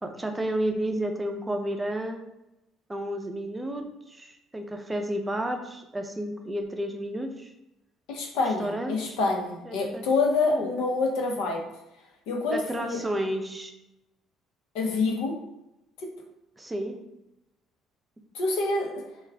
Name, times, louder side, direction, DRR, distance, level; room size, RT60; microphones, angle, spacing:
voice 1, 0.0-2.2 2.9-7.5 8.6-9.2 9.6-10.0 10.5-10.7 12.5-13.7 16.6-17.0, right 1 dB, 10° right, 4 dB, 0.5 m, -31 dB
voice 2, 8.1-11.6 12.3-13.0 14.7-15.4 18.3-19.0, left 3 dB, 85° left, 1 dB, 0.8 m, -26 dB
4.6 x 2.4 x 3.4 m, 0.89 s
cardioid pair, 120°, 0 cm